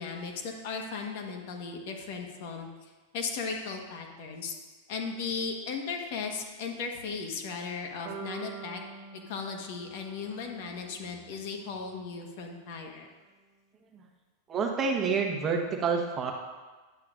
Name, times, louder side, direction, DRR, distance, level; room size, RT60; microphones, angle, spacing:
voice 1, 0.0-2.7 3.1-4.5 4.9-8.8 9.1-13.1, left 5 dB, 60° left, 3 dB, 1.3 m, -36 dB
sound 1, 8.1-12.2, right 5 dB, 50° right, 1.4 m, -46 dB
voice 2, 14.5-16.3, right 5 dB, 25° right, 2 dB, 1.1 m, -28 dB
10.5 x 8.4 x 2.5 m, 1.3 s
supercardioid pair, 130°, 0 cm